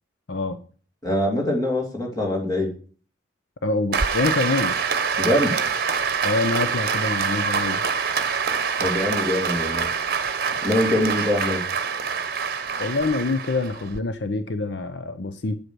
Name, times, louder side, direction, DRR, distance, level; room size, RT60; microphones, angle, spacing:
voice 1, 1.0-2.7 5.2-5.5 8.8-9.9 10.6-11.6, left 1 dB, 20° left, -1 dB, 2.7 m, -23 dB
voice 2, 3.6-4.7 6.2-7.8 12.8-15.6, left 3 dB, 65° left, 10 dB, 0.7 m, -25 dB
Applause, 3.9-14.0, right 6 dB, 50° right, 1.0 m, -25 dB
8.7 x 7.9 x 6.2 m, 0.42 s
head